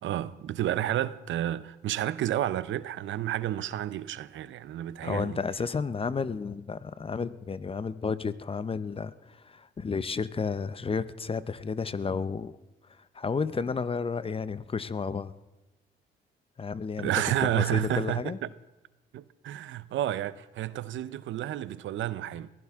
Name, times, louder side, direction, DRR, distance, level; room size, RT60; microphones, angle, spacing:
voice 1, 0.0-5.4 17.0-18.5 19.1-22.5, right 12 dB, 75° right, 0.7 m, -31 dB
voice 2, 5.0-12.6 13.1-15.3 16.6-17.1 17.4-18.4, left 5 dB, 30° left, 0.7 m, -32 dB
22.0 x 16.0 x 3.6 m
cardioid pair, 90°, 20 cm